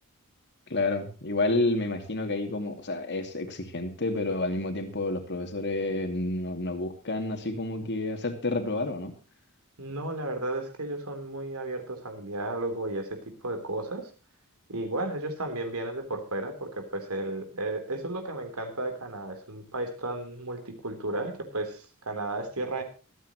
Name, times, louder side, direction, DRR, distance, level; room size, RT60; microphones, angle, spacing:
voice 1, 0.7-9.1, left 2 dB, 50° left, 6 dB, 2.6 m, -29 dB
voice 2, 9.8-14.1 14.7-22.8, right 2 dB, 75° right, 6 dB, 3.7 m, -33 dB
25.0 x 9.2 x 3.1 m, 0.35 s
head